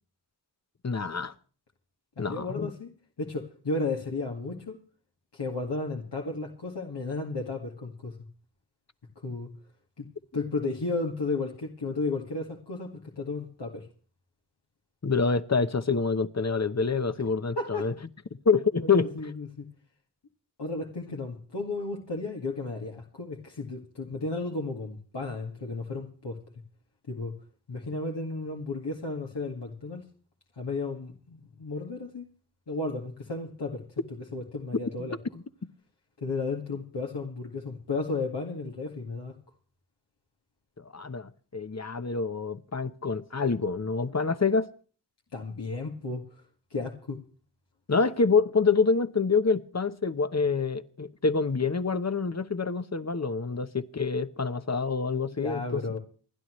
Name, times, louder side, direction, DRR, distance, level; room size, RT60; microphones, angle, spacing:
voice 1, 0.8-1.3 2.2-2.7 15.0-17.9 18.4-19.3 35.0-35.4 40.8-44.7 47.9-56.0, left 4 dB, 40° left, 1.0 m, -27 dB
voice 2, 2.2-2.9 3.2-4.8 5.3-8.2 9.2-9.5 10.0-10.1 10.3-13.9 17.6-17.9 18.8-19.7 20.6-26.4 27.1-27.4 27.7-30.1 30.6-32.3 32.7-33.8 34.3-35.2 36.2-39.4 45.3-46.2 46.7-47.2 55.4-56.0, left 3 dB, 80° left, 2.1 m, -33 dB
28.0 x 11.5 x 3.1 m
wide cardioid pair, 60°, 41 cm